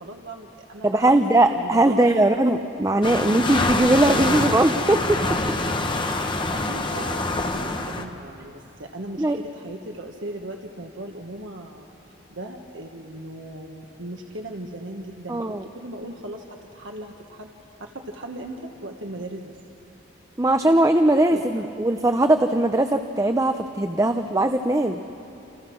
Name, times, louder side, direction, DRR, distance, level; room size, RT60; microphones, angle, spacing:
voice 1, 0.0-1.0 1.4-2.4 6.4-11.9 12.3-17.5 17.8-19.6 21.3-21.8, right 1 dB, 80° right, 3 dB, 1.4 m, -38 dB
voice 2, 0.8-5.2 9.2-9.4 15.3-15.6 20.4-25.0, right 1 dB, 15° right, 7 dB, 0.6 m, -20 dB
sound 1, 3.0-8.0, left 2 dB, 25° left, 1.3 m, -25 dB
29.0 x 27.5 x 6.2 m, 3.0 s
head